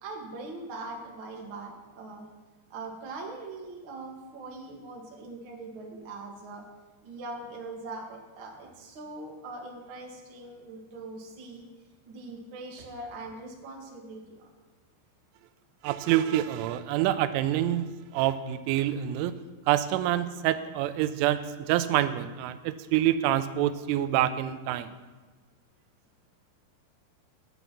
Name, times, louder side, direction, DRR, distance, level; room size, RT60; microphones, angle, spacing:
voice 1, 0.0-2.2 2.7-6.6 7.0-11.6 12.0-14.5, right 2 dB, 55° right, -1 dB, 1.4 m, -41 dB
voice 2, 15.8-17.9 18.1-19.4 19.7-24.9, right 12 dB, 90° right, 12 dB, 3.1 m, -26 dB
11.0 x 9.3 x 6.0 m, 1.3 s
omnidirectional pair, 5.5 m